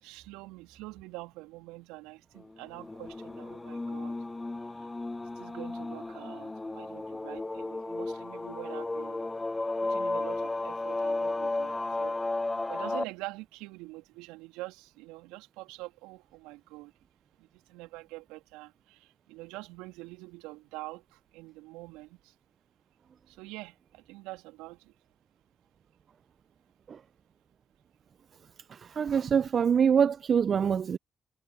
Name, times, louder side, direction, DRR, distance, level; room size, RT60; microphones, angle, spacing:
voice 1, 0.0-4.2 4.8-4.9 5.4-9.3 9.8-12.2 12.7-16.9 17.4-22.3 23.3-24.9, right 21 dB, 75° right, 3.2 m, -45 dB
sound 1, 2.7-13.0, left 2 dB, 20° left, 1.8 m, -34 dB
voice 2, 28.7-31.0, right 7 dB, 55° right, 0.8 m, -25 dB
hypercardioid pair, 40°, 0 cm